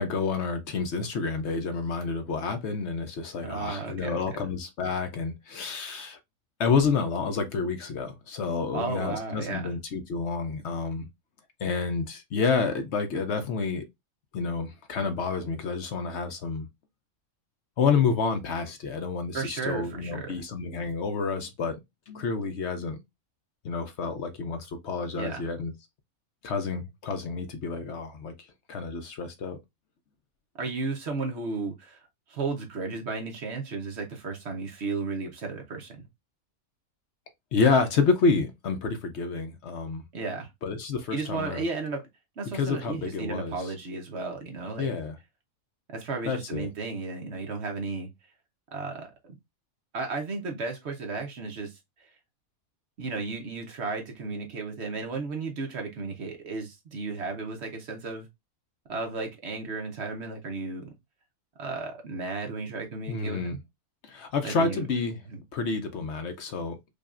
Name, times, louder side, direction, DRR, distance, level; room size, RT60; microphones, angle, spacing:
voice 1, 0.0-6.2 6.6-11.1 11.6-13.9 14.3-16.7 17.8-21.8 22.1-23.0 23.6-25.7 26.4-28.3 28.7-29.6 37.5-40.0 40.6-41.7 42.5-43.6 44.8-45.2 46.3-46.7 63.1-63.6 64.0-65.2 65.5-66.8, left 4 dB, 60° left, 0.8 m, -29 dB
voice 2, 3.4-4.2 8.7-9.7 19.3-20.4 25.1-25.5 30.6-36.1 40.1-40.5 41.1-42.0 42.4-44.9 45.9-48.1 48.7-49.1 49.9-52.1 53.0-58.3 58.9-60.9 61.6-63.6 64.4-64.9 65.3-65.4, right 4 dB, 55° right, 1.1 m, -34 dB
5.1 x 2.4 x 2.4 m
omnidirectional pair, 1.5 m